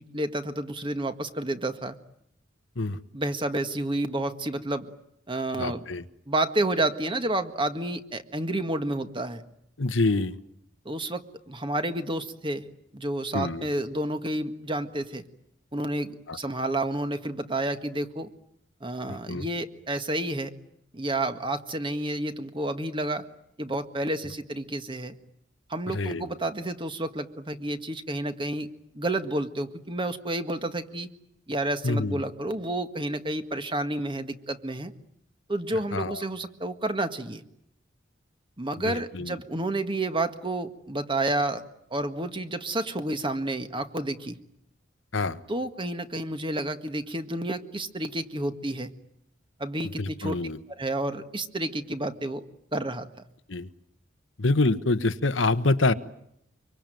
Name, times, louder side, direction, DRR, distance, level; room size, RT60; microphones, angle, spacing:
voice 1, 0.0-2.0 3.1-4.9 5.3-5.8 6.3-9.4 10.9-12.7 12.9-15.2 15.7-18.3 18.8-20.5 20.9-23.2 23.6-25.2 25.7-28.7 29.0-31.1 31.5-34.9 35.5-37.4 38.6-41.6 41.9-44.4 45.5-48.9 49.6-50.4 50.8-52.4 52.7-53.1, right 1 dB, 25° right, 9 dB, 1.8 m, -30 dB
voice 2, 5.5-6.0 9.8-10.3 13.3-13.6 16.3-16.4 19.1-19.5 25.9-26.3 31.8-32.2 35.9-36.2 38.8-39.4 45.1-45.4 50.0-50.6 53.5-53.7 54.4-55.9, left 2 dB, 85° left, 11 dB, 1.3 m, -26 dB
25.0 x 24.5 x 9.3 m, 0.74 s
head